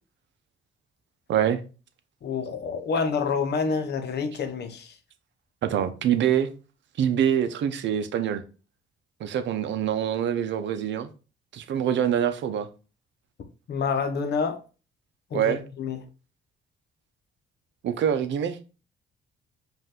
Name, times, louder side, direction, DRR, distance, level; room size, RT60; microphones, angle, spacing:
voice 1, 1.3-1.6 5.6-6.5 7.0-8.4 9.2-11.1 11.5-12.7 15.3-15.6 17.8-18.6, right 9 dB, 70° right, 0.6 m, -25 dB
voice 2, 2.2-5.0 13.7-14.6 15.3-16.0, left 5 dB, 55° left, 0.9 m, -28 dB
5.3 x 2.6 x 3.7 m
cardioid pair, 90°, 20 cm